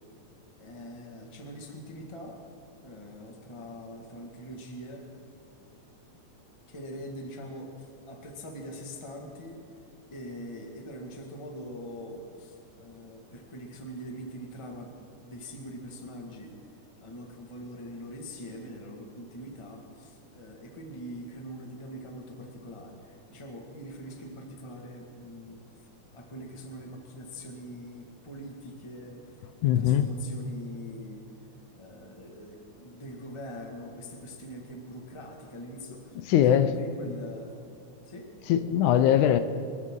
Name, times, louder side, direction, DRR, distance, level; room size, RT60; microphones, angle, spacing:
voice 1, 0.6-2.4 2.8-5.0 6.7-9.6 10.1-14.9 15.2-16.6 17.0-25.9 26.1-31.3 31.7-36.2 36.5-37.7 38.0-38.3, equal, 15° left, 1.0 m, -43 dB
voice 2, 29.6-30.1 36.3-36.7 38.5-39.4, left 10 dB, 80° left, 2.1 m, -21 dB
25.5 x 13.5 x 3.7 m
omnidirectional pair, 3.5 m